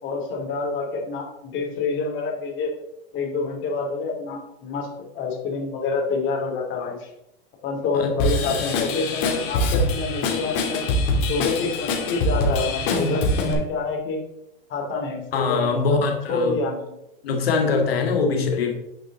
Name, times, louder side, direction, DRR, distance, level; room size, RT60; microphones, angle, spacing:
voice 1, 0.0-2.7 3.1-7.1 7.6-10.8 11.3-14.2 14.7-16.0 16.3-16.8 18.1-18.4, left 4 dB, 40° left, 1 dB, 2.5 m, -27 dB
Drum kit / Drum, 8.2-13.5, left 2 dB, 60° left, 2.7 m, -24 dB
voice 2, 15.3-16.6 17.2-18.7, left 4 dB, 90° left, 2 dB, 2.2 m, -23 dB
10.0 x 5.3 x 4.0 m, 0.86 s
hypercardioid pair, 110°, 29 cm